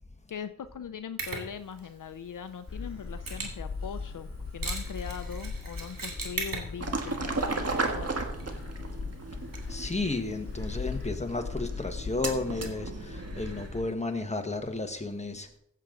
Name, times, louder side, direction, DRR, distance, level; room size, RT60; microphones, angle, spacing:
voice 1, 0.3-8.1, left 7 dB, 70° left, 0.6 m, -41 dB
Mechanisms, 1.2-11.1, right 3 dB, 85° right, 2.3 m, -42 dB
Gull seagull, 2.7-13.9, left 4 dB, 40° left, 2.5 m, -39 dB
sound 1, 6.8-13.8, right 3 dB, 50° right, 1.6 m, -35 dB
voice 2, 9.7-15.6, left 3 dB, 20° left, 1.4 m, -33 dB
15.5 x 7.5 x 3.9 m
cardioid pair, 60°, 33 cm